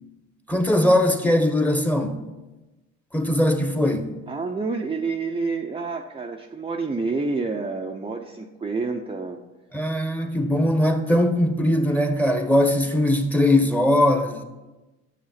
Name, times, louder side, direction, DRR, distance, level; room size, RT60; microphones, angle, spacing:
voice 1, 0.5-2.2 3.1-4.1 9.7-14.4, left 1 dB, 5° left, 1.4 m, -20 dB
voice 2, 4.3-9.4, right 4 dB, 20° right, 0.8 m, -28 dB
10.5 x 6.7 x 5.8 m
supercardioid pair, 80°, 29 cm